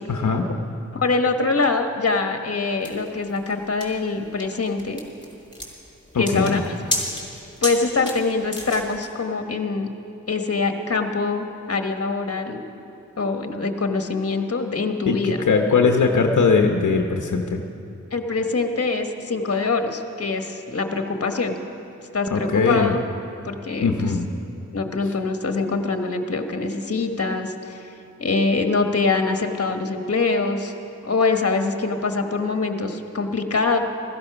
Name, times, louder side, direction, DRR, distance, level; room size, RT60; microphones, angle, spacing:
voice 1, 0.1-0.6 6.1-6.6 15.1-17.6 22.3-22.9 23.8-24.3, left 4 dB, 70° left, 3 dB, 1.0 m, -20 dB
voice 2, 0.9-5.0 6.2-7.0 7.6-9.9 10.3-12.6 13.2-15.4 18.1-21.6 22.1-23.0 23.4-24.1 24.7-27.9 28.2-30.7 31.0-33.8, left 3 dB, 50° left, 5 dB, 1.4 m, -24 dB
sound 1, 2.8-9.1, left 1 dB, 15° left, 4.7 m, -32 dB
15.0 x 14.5 x 6.0 m, 2.9 s
cardioid pair, 55°, 31 cm